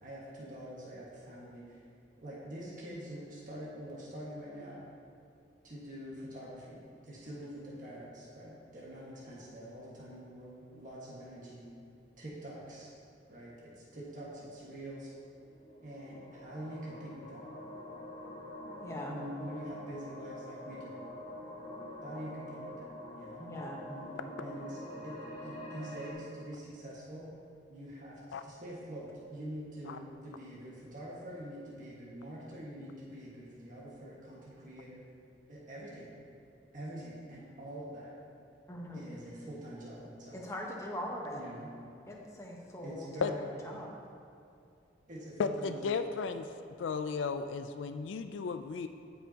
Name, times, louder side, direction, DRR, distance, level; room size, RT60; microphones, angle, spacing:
voice 1, 0.0-1.8 2.2-4.8 5.6-11.7 12.2-12.9 13.3-15.1 15.8-17.5 19.1-21.0 22.0-23.5 23.9-27.3 27.7-35.0 35.5-36.1 36.7-38.1 38.9-40.4 41.3-41.7 42.8-43.6 45.1-46.0, right 1 dB, 45° right, -6 dB, 1.6 m, -45 dB
sound 1, 15.4-26.1, left 1 dB, 45° left, 2.0 m, -46 dB
voice 2, 18.8-19.2 23.4-23.8 38.7-39.1 40.3-41.4 42.1-43.1 43.6-43.9, left 1 dB, 15° left, -2 dB, 1.0 m, -41 dB
voice 3, 45.4-46.5 46.8-48.9, left 5 dB, 85° left, 9 dB, 0.4 m, -34 dB
15.5 x 5.5 x 2.9 m, 2.5 s
head